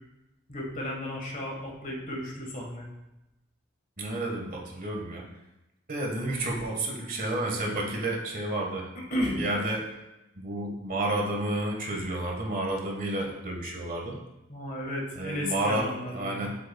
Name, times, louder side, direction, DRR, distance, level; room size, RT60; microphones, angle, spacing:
voice 1, 0.5-2.9 9.1-9.4 14.5-16.4, left 1 dB, 45° left, -1 dB, 1.5 m, -33 dB
voice 2, 4.0-5.2 5.9-8.9 9.4-9.8 10.4-14.2 15.2-16.5, right 1 dB, 45° right, 0 dB, 1.5 m, -31 dB
8.1 x 6.3 x 2.3 m, 0.95 s
head